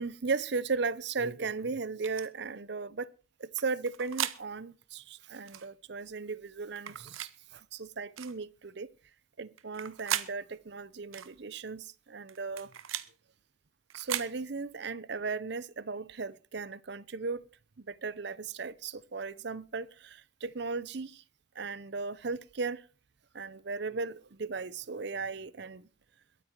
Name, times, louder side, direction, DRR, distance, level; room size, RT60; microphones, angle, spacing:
voice 1, 0.0-3.1 3.4-8.9 9.4-12.7 13.9-17.5 17.8-21.2 21.6-22.8 23.3-25.9, right 4 dB, 55° right, 0.6 m, -36 dB
sound 1, 2.0-2.3 3.6-4.4 5.5-5.7 6.8-7.3 8.2-8.4 9.6-10.3 11.1-11.3 12.3-13.1 13.9-14.3, right 11 dB, 90° right, 0.9 m, -36 dB
22.0 x 8.7 x 4.5 m
head